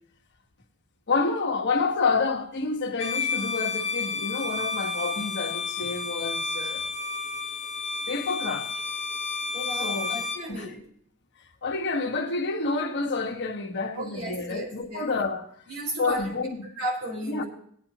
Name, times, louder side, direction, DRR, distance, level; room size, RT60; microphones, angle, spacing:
voice 1, 1.1-6.9 8.1-8.7 9.7-10.2 10.5-10.7 11.6-15.5 16.0-16.7 17.3-17.4, left 4 dB, 55° left, 1.5 m, -29 dB
Bowed string instrument, 3.0-10.5, left 4 dB, 30° left, 1.3 m, -31 dB
voice 2, 9.5-10.8 13.9-15.0 15.7-16.3 16.8-17.4, right 1 dB, 70° right, 4.7 m, -34 dB
19.5 x 9.3 x 3.0 m
head